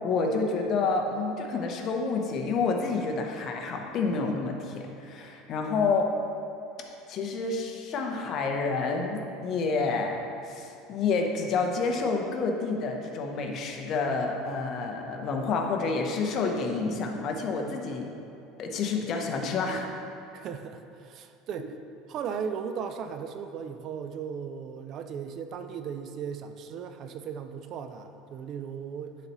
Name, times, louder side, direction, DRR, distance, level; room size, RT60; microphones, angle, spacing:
voice 1, 0.0-6.1 7.1-10.2 10.4-18.1 18.6-19.9, left 4 dB, 45° left, 2 dB, 0.8 m, -29 dB
voice 2, 20.3-21.7 22.1-29.2, right 7 dB, 45° right, 8 dB, 0.4 m, -37 dB
10.5 x 4.1 x 3.0 m, 2.6 s
supercardioid pair, 135°, 0 cm